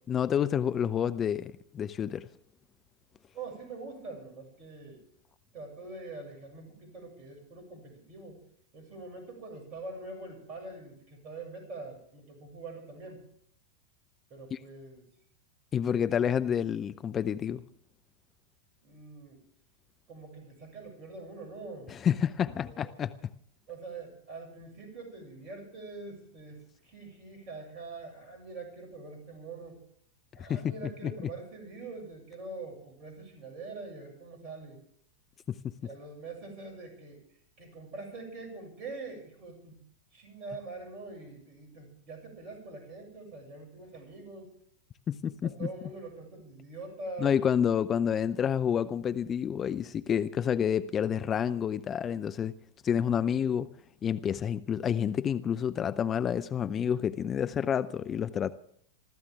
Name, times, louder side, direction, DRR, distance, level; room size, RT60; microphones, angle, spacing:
voice 1, 0.1-2.3 14.5-14.6 15.7-17.6 21.9-23.3 30.4-30.7 31.0-31.1 35.6-35.7 45.1-45.7 47.2-52.5 52.8-53.7 54.0-58.5, left 8 dB, 25° left, 0.6 m, -29 dB
voice 2, 3.3-5.0 5.5-8.4 8.7-13.2 14.3-15.0 18.8-19.4 20.1-21.9 22.6-23.1 23.7-29.8 30.3-34.8 35.8-37.2 37.6-39.8 40.1-44.5 45.4-47.4, right 3 dB, 35° right, 6.9 m, -44 dB
26.0 x 14.0 x 3.5 m
figure-of-eight pair, 90°, 0 cm